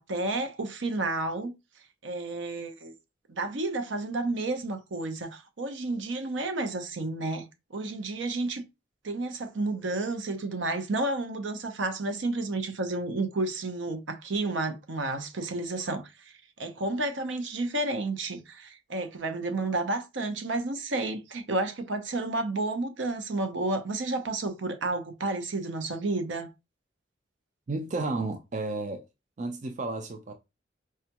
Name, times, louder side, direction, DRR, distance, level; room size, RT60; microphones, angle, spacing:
voice 1, 0.0-1.5 2.0-2.9 3.3-8.6 9.0-26.5, right 2 dB, 75° right, 0.7 m, -31 dB
voice 2, 27.7-29.0 29.4-30.3, right 3 dB, 40° right, 0.4 m, -32 dB
4.8 x 2.2 x 2.9 m
head